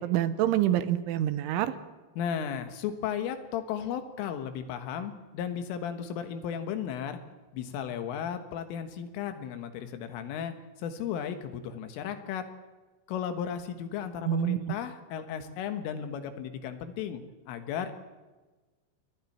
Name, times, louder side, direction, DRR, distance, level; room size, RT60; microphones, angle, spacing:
voice 1, 0.0-1.7 14.3-14.6, right 12 dB, 80° right, 12 dB, 3.3 m, -26 dB
voice 2, 2.2-7.2 7.5-10.5 10.8-12.5 13.1-17.9, left 8 dB, 85° left, 8 dB, 4.0 m, -35 dB
30.0 x 22.0 x 4.4 m, 1.2 s
omnidirectional pair, 5.6 m